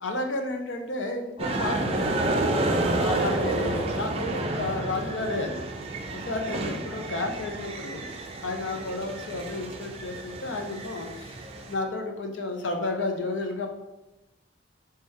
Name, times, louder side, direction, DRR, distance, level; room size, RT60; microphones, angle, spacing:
voice 1, 0.0-2.2 2.9-5.7 6.1-8.1 8.4-11.3 11.7-13.7, left 2 dB, 90° left, 4 dB, 0.6 m, -32 dB
sound 1, 1.4-11.7, right 2 dB, 30° right, 0.4 m, -30 dB
3.3 x 3.2 x 4.6 m, 0.99 s
head